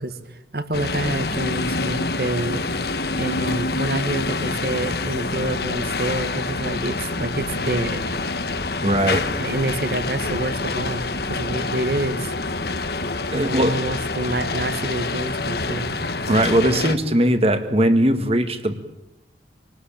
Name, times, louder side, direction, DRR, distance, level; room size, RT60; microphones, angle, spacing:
voice 1, 0.0-2.6 3.2-8.0 9.4-12.3 13.3-15.9, right 1 dB, 55° right, 10 dB, 1.8 m, -27 dB
sound 1, 0.7-17.0, left 3 dB, 60° left, 1.5 m, -26 dB
voice 2, 8.8-9.2 13.3-13.9 16.3-18.7, right 1 dB, 35° right, 9 dB, 1.9 m, -19 dB
27.0 x 19.5 x 8.7 m, 0.92 s
head